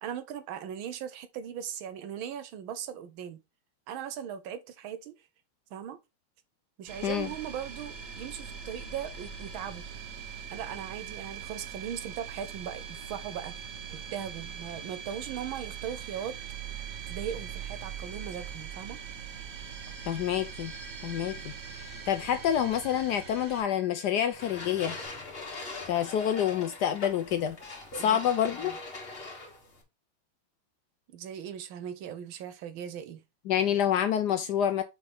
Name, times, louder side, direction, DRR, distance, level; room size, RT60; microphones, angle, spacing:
voice 1, 0.0-3.4 3.9-5.1 5.7-6.0 6.8-9.8 10.5-13.5 13.9-16.4 17.1-19.0 28.0-28.2 28.6-28.8 31.1-33.2, right 9 dB, 75° right, 1.5 m, -39 dB
sound 1, 6.9-23.6, right 7 dB, 50° right, 1.1 m, -42 dB
sound 2, 15.8-25.1, equal, 30° right, 1.8 m, -52 dB
voice 2, 20.1-20.7 21.0-21.5 22.1-25.0 25.9-27.6 27.9-28.7 33.5-34.8, left 9 dB, 75° left, 0.9 m, -27 dB
sound 3, 24.3-29.8, left 2 dB, 30° left, 1.5 m, -41 dB
5.4 x 4.7 x 3.8 m
omnidirectional pair, 2.3 m